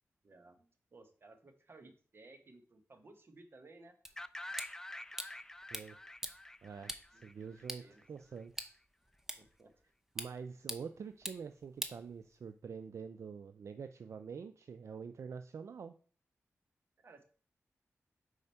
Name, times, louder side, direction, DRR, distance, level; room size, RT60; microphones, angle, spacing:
voice 1, 0.2-4.0 7.1-7.3 7.8-8.0 9.4-9.7 17.0-17.2, right 2 dB, 50° right, 7 dB, 1.0 m, -58 dB
sound 1, 4.1-12.7, right 1 dB, 5° right, 0.7 m, -47 dB
sound 2, 4.2-8.0, left 1 dB, 10° left, 0.3 m, -48 dB
voice 2, 6.6-8.7 10.2-15.9, right 6 dB, 70° right, 9 dB, 0.4 m, -46 dB
4.9 x 4.3 x 5.5 m, 0.44 s
wide cardioid pair, 80°, 5 cm